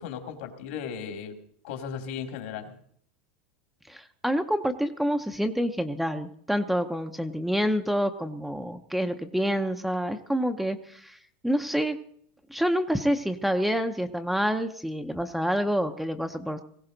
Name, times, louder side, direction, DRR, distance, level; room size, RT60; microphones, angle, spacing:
voice 1, 0.0-1.4 1.6-2.7, left 7 dB, 65° left, 6 dB, 2.4 m, -36 dB
voice 2, 3.9-12.0 12.5-16.6, equal, ahead, 6 dB, 0.6 m, -27 dB
19.5 x 16.0 x 3.9 m, 0.63 s
supercardioid pair, 160°, 6 cm